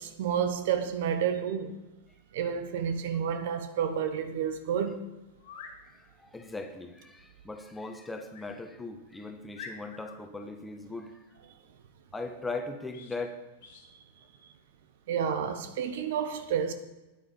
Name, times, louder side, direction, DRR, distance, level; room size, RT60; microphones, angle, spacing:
voice 1, 0.0-1.8 2.3-5.0 15.1-16.7, right 8 dB, 55° right, 0.9 m, -30 dB
sound 1, 5.4-5.8 8.3-8.5 9.0-9.1 9.5-10.2 12.9-13.2 13.6-13.9, left 5 dB, 55° left, 1.7 m, -46 dB
voice 2, 5.8-11.2 12.1-13.4, left 3 dB, 10° left, 1.4 m, -39 dB
12.5 x 9.5 x 5.2 m
figure-of-eight pair, 90°, 0 cm